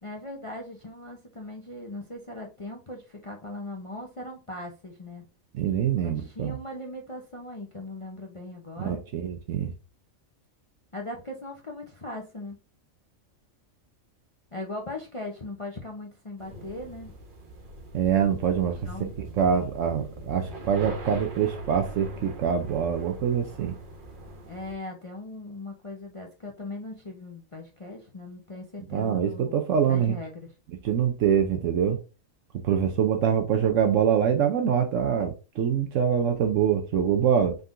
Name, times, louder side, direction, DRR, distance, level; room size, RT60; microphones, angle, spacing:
voice 1, 0.0-5.3 6.0-9.0 10.9-12.6 14.5-17.2 18.8-19.1 24.5-30.5, left 2 dB, 30° left, 0.7 m, -39 dB
voice 2, 5.5-6.6 8.8-9.7 17.9-23.7 28.9-30.2 30.8-32.0 32.6-37.6, right 8 dB, 70° right, 1.0 m, -24 dB
sound 1, 16.4-24.7, right 1 dB, 40° right, 1.1 m, -42 dB
5.4 x 3.8 x 2.6 m
omnidirectional pair, 1.4 m